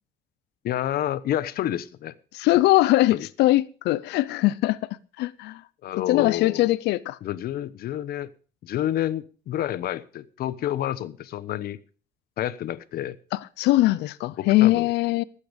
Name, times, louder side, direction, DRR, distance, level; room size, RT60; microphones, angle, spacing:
voice 1, 0.6-2.1 3.1-3.2 5.8-6.7 7.2-8.3 8.6-11.8 12.4-13.2 14.4-14.9, left 12 dB, 65° left, 1.0 m, -29 dB
voice 2, 2.3-5.6 6.1-7.2 13.3-15.2, left 17 dB, 85° left, 0.6 m, -21 dB
19.0 x 8.5 x 5.1 m
cardioid pair, 110°, 17 cm